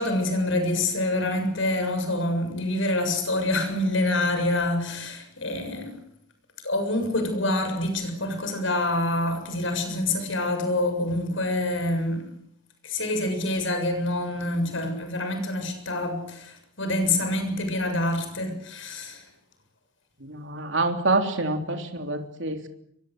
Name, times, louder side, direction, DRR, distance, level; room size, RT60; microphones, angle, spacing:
voice 1, 0.0-6.0 6.6-12.2 12.8-19.2, left 1 dB, 70° left, 7.2 m, -26 dB
voice 2, 20.2-22.7, right 2 dB, 65° right, 3.5 m, -26 dB
24.5 x 23.5 x 8.0 m
head